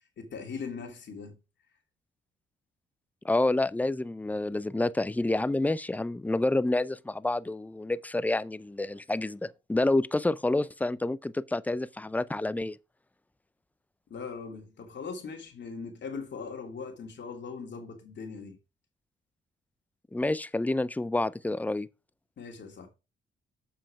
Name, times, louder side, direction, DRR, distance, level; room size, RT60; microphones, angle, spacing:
voice 1, 0.2-1.3 14.1-18.6 22.4-22.9, left 5 dB, 60° left, 2.9 m, -40 dB
voice 2, 3.2-12.8 20.1-21.9, left 2 dB, 5° left, 0.4 m, -28 dB
7.5 x 5.6 x 4.8 m
cardioid pair, 70°, 21 cm